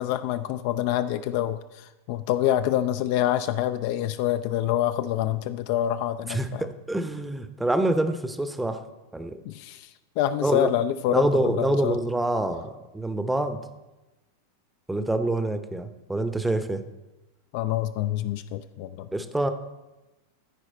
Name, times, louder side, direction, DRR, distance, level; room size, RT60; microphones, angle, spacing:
voice 1, 0.0-6.7 9.5-9.9 10.2-12.0 17.5-19.1, left 12 dB, 45° left, 11 dB, 0.3 m, -26 dB
voice 2, 6.3-8.8 9.1-9.4 10.4-10.7 11.1-13.6 14.9-16.8 19.1-19.5, right 1 dB, 5° right, 9 dB, 0.7 m, -26 dB
14.0 x 4.7 x 4.3 m, 1.1 s
figure-of-eight pair, 90°, 0 cm